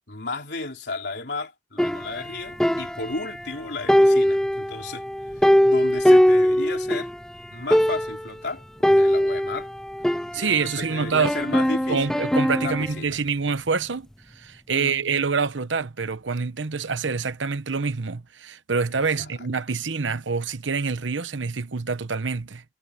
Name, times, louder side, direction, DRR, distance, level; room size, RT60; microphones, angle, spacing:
voice 1, 0.1-7.1 7.5-9.7 10.3-12.0 12.5-13.2 14.7-15.2 18.9-19.3, left 3 dB, 65° left, 3.9 m, -34 dB
sound 1, 1.8-3.5 3.9-7.2 7.4-7.5 7.7-8.3 8.8-10.8 11.2-12.9, equal, 5° left, 0.4 m, -21 dB
voice 2, 10.3-11.3 11.9-14.1 14.4-22.6, right 5 dB, 90° right, 1.0 m, -26 dB
head